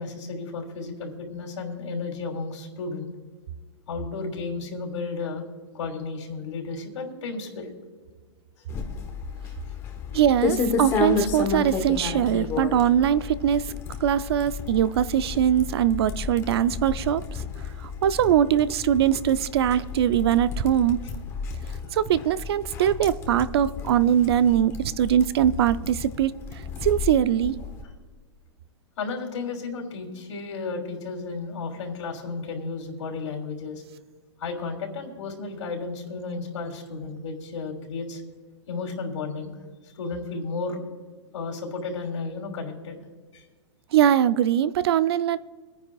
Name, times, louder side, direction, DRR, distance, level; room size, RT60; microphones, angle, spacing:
voice 1, 0.0-3.1 3.9-5.4 5.7-7.8 29.0-33.8 34.4-38.2 38.7-39.6 39.9-40.8 41.3-43.0 43.3-43.4, left 4 dB, 80° left, 1 dB, 3.0 m, -33 dB
sound 1, 8.7-27.8, left 5 dB, 15° left, 1.0 m, -32 dB
voice 2, 10.1-13.7 14.0-17.4 17.8-21.0 21.9-26.3 26.8-27.5 43.9-45.4, right 10 dB, 55° right, 15 dB, 0.5 m, -22 dB
25.0 x 9.6 x 2.3 m, 1.5 s
hypercardioid pair, 170°, 16 cm